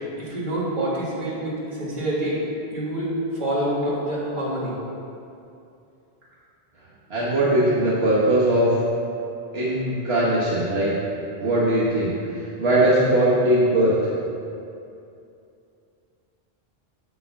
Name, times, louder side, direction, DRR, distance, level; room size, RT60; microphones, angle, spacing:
voice 1, 0.2-2.4 2.7-4.7, right 1 dB, 50° right, -8 dB, 1.9 m, -26 dB
voice 2, 7.1-8.8 9.5-10.9 11.4-14.0, right 1 dB, 80° right, -8 dB, 1.4 m, -20 dB
7.5 x 6.9 x 3.4 m, 2.6 s
omnidirectional pair, 1.0 m